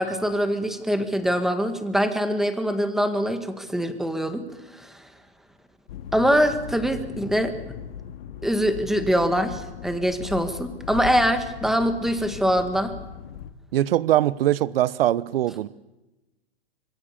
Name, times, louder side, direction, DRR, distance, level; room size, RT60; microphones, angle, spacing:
voice 1, 0.0-4.5 4.7-4.9 6.1-7.8 8.4-12.9, equal, ahead, 1.9 m, -23 dB
sound 1, 5.9-13.5, left 9 dB, 65° left, 2.2 m, -38 dB
voice 2, 13.7-15.7, right 13 dB, 65° right, 1.0 m, -22 dB
26.5 x 22.5 x 7.1 m
hypercardioid pair, 145°, 32 cm